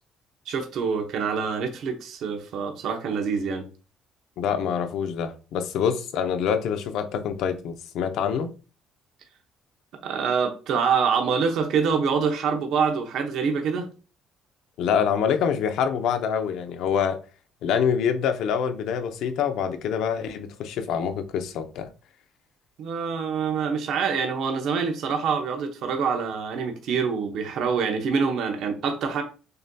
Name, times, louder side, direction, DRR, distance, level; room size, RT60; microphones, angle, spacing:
voice 1, 0.5-3.7 10.0-13.9 22.8-29.2, right 6 dB, 65° right, 0.8 m, -25 dB
voice 2, 4.4-8.5 14.8-17.2 17.6-21.9, left 7 dB, 70° left, 0.6 m, -26 dB
6.5 x 2.7 x 2.2 m
cardioid pair, 125°, 0 cm